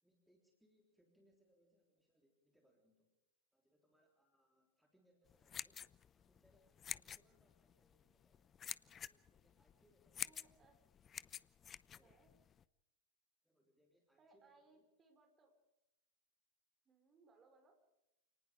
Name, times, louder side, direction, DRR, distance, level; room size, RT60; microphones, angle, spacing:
voice 1, 0.0-3.1 3.5-8.5 8.9-10.4 11.8-12.2 13.4-14.9, equal, ahead, 1 dB, 3.6 m, -76 dB
sound 1, 5.3-12.6, left 8 dB, 25° left, 0.6 m, -49 dB
voice 2, 10.2-10.8 12.0-12.3 14.2-15.5 16.9-17.9, right 3 dB, 25° right, 6 dB, 5.2 m, -69 dB
28.5 x 19.0 x 5.1 m, 0.89 s
figure-of-eight pair, 90°, 0 cm